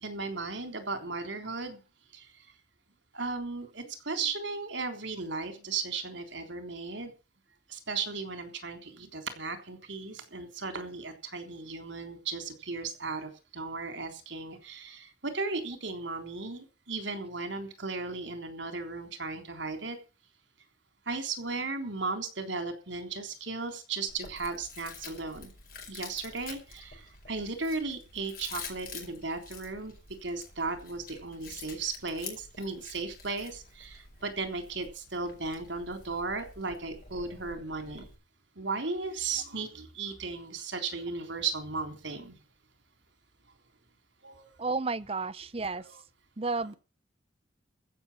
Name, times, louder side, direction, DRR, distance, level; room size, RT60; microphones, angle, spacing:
voice 1, 0.0-1.8 3.1-7.1 7.7-20.0 21.1-25.5 25.9-27.0 27.3-29.9 30.2-38.1 38.6-42.3 44.2-44.5 45.8-46.0, right 4 dB, 70° right, 3.6 m, -36 dB
Chewing mastication, 24.1-38.2, left 5 dB, 50° left, 5.0 m, -48 dB
voice 2, 44.6-45.8 46.4-46.7, right 3 dB, 30° right, 0.6 m, -32 dB
15.0 x 6.8 x 8.7 m
head